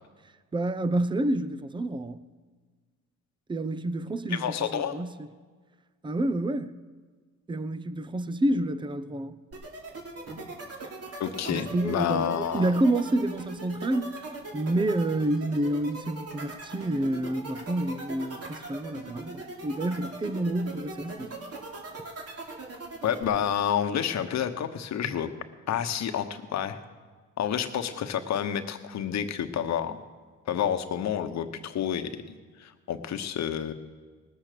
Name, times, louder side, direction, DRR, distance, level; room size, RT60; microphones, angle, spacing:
voice 1, 0.5-2.2 3.5-5.3 6.0-6.8 7.5-9.4 11.5-14.2 14.5-21.3, right 1 dB, 15° right, 0.6 m, -28 dB
voice 2, 4.3-5.0 11.2-12.7 23.0-25.3 25.7-26.8 27.4-30.0 30.5-33.7, left 9 dB, 65° left, 1.1 m, -29 dB
sound 1, 9.5-23.2, right 3 dB, 50° right, 3.2 m, -40 dB
19.0 x 7.6 x 6.8 m
cardioid pair, 90°, 30 cm